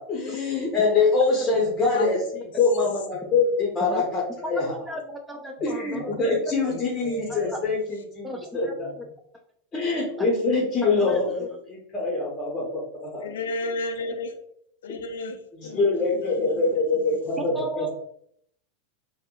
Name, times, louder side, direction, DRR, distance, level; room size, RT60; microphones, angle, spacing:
voice 1, 0.0-2.2 2.6-4.2 4.5-4.6 5.6-7.8 8.1-8.7 9.7-11.3 11.7-13.3 15.7-17.9, left 3 dB, 25° left, -3 dB, 0.8 m, -24 dB
voice 2, 1.5-2.2 5.6-6.3 6.7-7.8 8.8-9.0 13.2-14.4 14.8-17.2, left 2 dB, 75° left, 6 dB, 0.4 m, -35 dB
voice 3, 4.9-6.1 6.4-6.8 7.3-7.6 8.2-8.7 9.7-9.9 10.2-10.3 10.8-11.6 17.4-17.9, equal, 5° right, 2 dB, 0.5 m, -35 dB
3.5 x 2.1 x 2.4 m, 0.68 s
hypercardioid pair, 90°, 0 cm